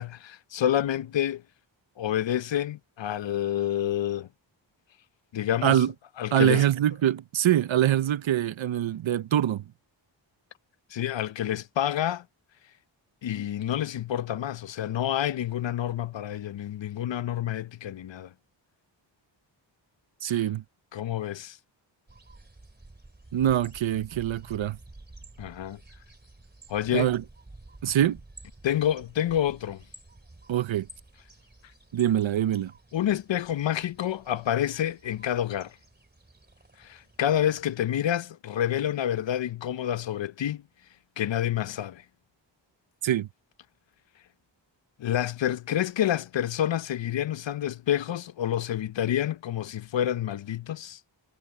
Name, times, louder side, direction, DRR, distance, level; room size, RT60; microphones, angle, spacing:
voice 1, 0.0-1.4 2.0-4.3 5.3-5.8 6.2-6.6 10.9-12.2 13.2-18.3 20.9-21.6 25.4-25.8 26.7-27.1 28.6-29.8 32.9-35.8 36.8-40.6 41.2-42.0 45.0-51.0, left 11 dB, 70° left, 0.7 m, -28 dB
voice 2, 5.6-5.9 6.3-9.6 20.2-20.6 23.3-24.8 26.9-27.2 27.8-28.2 30.5-30.9 31.9-32.7 43.0-43.3, right 11 dB, 80° right, 0.8 m, -24 dB
sound 1, 22.1-37.8, right 2 dB, 20° right, 3.0 m, -51 dB
wide cardioid pair, 75°, 46 cm